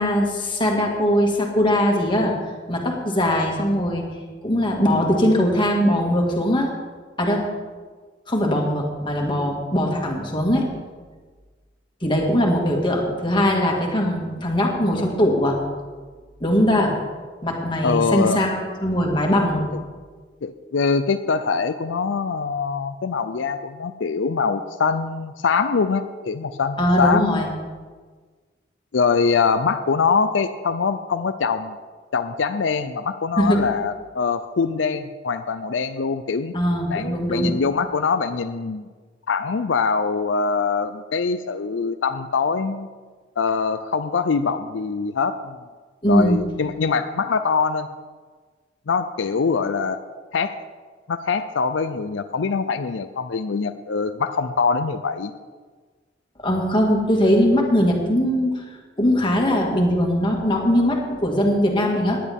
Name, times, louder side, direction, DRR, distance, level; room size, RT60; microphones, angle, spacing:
voice 1, 0.0-2.3 2.7-4.1 4.4-6.7 7.2-7.5 8.3-10.7 12.0-15.6 16.4-16.9 17.4-19.8 26.8-27.5 33.4-33.7 36.5-37.5 46.0-46.4 56.4-58.6 59.0-62.2, equal, 25° left, 0 dB, 2.1 m, -20 dB
voice 2, 17.8-18.4 19.7-19.8 20.4-27.4 28.9-31.8 32.1-36.5 36.9-38.9 39.3-42.9 43.4-45.6 46.1-47.9 48.9-50.0 50.3-50.5 51.1-55.3, left 5 dB, 90° left, 10 dB, 0.5 m, -23 dB
17.0 x 10.5 x 3.6 m, 1.4 s
head